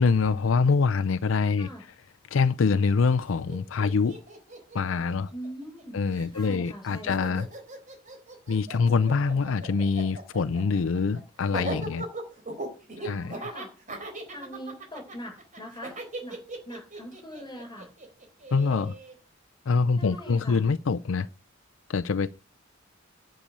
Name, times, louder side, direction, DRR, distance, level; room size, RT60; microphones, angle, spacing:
voice 1, 0.0-1.7 2.3-4.2 4.7-5.3 5.9-7.5 8.5-12.1 13.0-13.4 18.5-18.9 19.7-21.3 21.9-22.3, left 4 dB, 75° left, 0.5 m, -25 dB
voice 2, 1.5-1.8 5.3-6.0 6.3-7.5 13.0-13.7 14.3-16.4 16.6-17.9 20.0-20.6, equal, 20° left, 6.7 m, -42 dB
Laughter, 3.2-3.3 3.5-5.8 6.1-19.1, right 2 dB, 40° right, 3.8 m, -39 dB
10.0 x 6.7 x 8.4 m
head